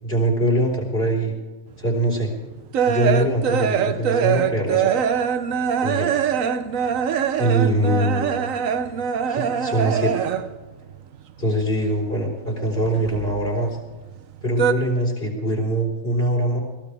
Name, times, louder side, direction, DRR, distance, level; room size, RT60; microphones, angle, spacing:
voice 1, 0.0-1.3 1.8-2.3 2.9-5.0 5.8-6.2 7.4-8.5 8.8-9.0 9.3-10.2 11.4-13.8 14.4-16.6, right 1 dB, 45° left, 1 dB, 4.4 m, -23 dB
sound 1, 1.9-10.7 10.9-12.1 12.4-13.8 14.1-14.7, right 7 dB, 80° right, 1.2 m, -23 dB
21.5 x 15.5 x 3.4 m, 1.3 s
omnidirectional pair, 1.4 m